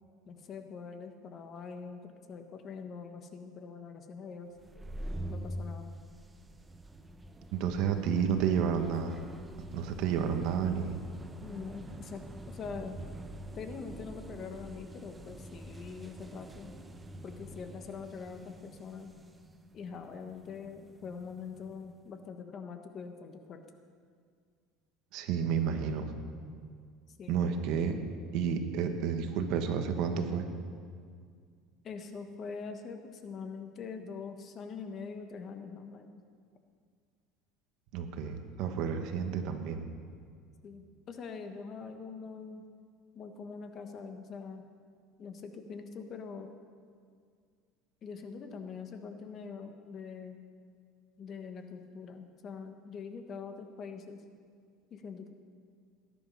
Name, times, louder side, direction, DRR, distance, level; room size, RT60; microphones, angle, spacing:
voice 1, 0.2-4.5 5.3-5.9 11.4-13.0 13.5-16.7 17.2-19.1 19.7-23.6 27.2-27.4 31.8-36.1 40.6-42.6 43.1-44.7 45.2-46.5 48.0-50.4 51.2-54.2 54.9-55.3, left 5 dB, 35° left, 6 dB, 1.3 m, -43 dB
sound 1, 4.6-22.0, right 1 dB, 15° right, 0.8 m, -46 dB
voice 2, 7.5-9.2 9.7-11.0 25.1-26.0 27.3-27.9 28.3-30.5 37.9-39.9, right 7 dB, 60° right, 6 dB, 1.5 m, -31 dB
18.5 x 11.0 x 5.7 m, 2.1 s
cardioid pair, 140°, 0 cm